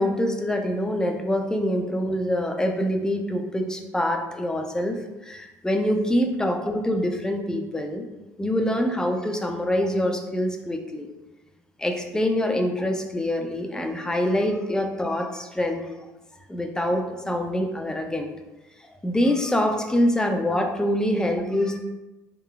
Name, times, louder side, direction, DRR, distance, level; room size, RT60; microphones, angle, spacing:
voice 1, 0.0-8.1 8.4-11.1 11.8-15.9 16.5-18.3 19.0-21.8, left 1 dB, 5° left, 4 dB, 0.4 m, -25 dB
3.9 x 2.1 x 2.3 m, 1.1 s
hypercardioid pair, 60°, 10 cm